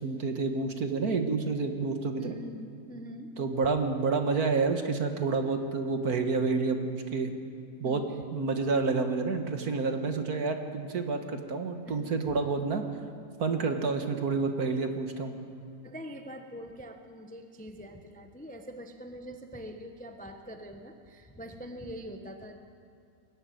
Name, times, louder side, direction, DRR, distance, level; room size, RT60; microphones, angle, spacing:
voice 1, 0.0-2.4 3.4-7.3 7.8-8.0 8.3-12.8 13.4-15.4, right 4 dB, 55° right, 6 dB, 1.8 m, -29 dB
voice 2, 2.2-3.3 7.8-8.2 11.8-12.1 15.8-22.6, equal, 5° left, 5 dB, 0.7 m, -44 dB
21.5 x 13.5 x 9.3 m, 2.5 s
omnidirectional pair, 2.1 m